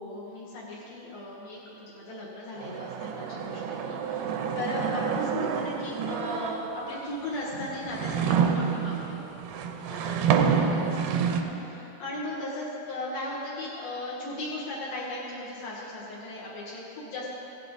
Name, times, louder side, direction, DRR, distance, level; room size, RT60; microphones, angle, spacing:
voice 1, 0.0-9.2 9.9-17.3, left 1 dB, 70° left, -7 dB, 3.0 m, -37 dB
sound 1, 2.6-7.0 7.5-11.4, right 7 dB, 85° right, 2.5 m, -28 dB
16.5 x 7.5 x 4.1 m, 2.9 s
omnidirectional pair, 4.4 m